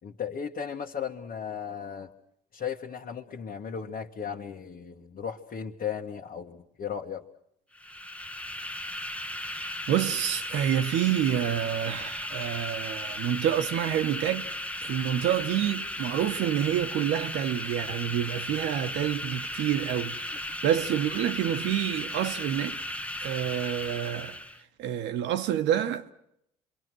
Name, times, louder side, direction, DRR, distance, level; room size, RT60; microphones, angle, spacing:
voice 1, 0.0-2.1 2.5-7.2, left 7 dB, 50° left, 1.8 m, -36 dB
sound 1, 7.7-24.6, left 1 dB, 5° left, 1.2 m, -36 dB
voice 2, 9.4-14.5 14.8-22.8 23.2-24.4 24.8-26.1, right 10 dB, 75° right, 1.3 m, -28 dB
27.5 x 24.0 x 6.3 m
hypercardioid pair, 65°, 19 cm